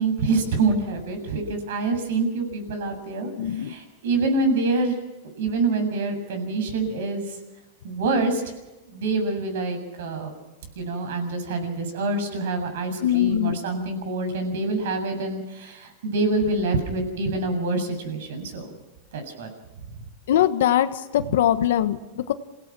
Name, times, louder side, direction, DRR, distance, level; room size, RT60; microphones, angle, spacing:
voice 1, 0.0-3.3 3.7-5.0 5.4-7.4 7.8-8.5 8.9-10.3 10.8-18.7 19.1-19.5, right 3 dB, 70° right, 6 dB, 7.2 m, -26 dB
voice 2, 3.4-3.8 13.0-13.6 20.3-22.3, left 11 dB, 75° left, 9 dB, 1.3 m, -22 dB
27.5 x 17.5 x 6.2 m, 1.1 s
supercardioid pair, 160°, 0 cm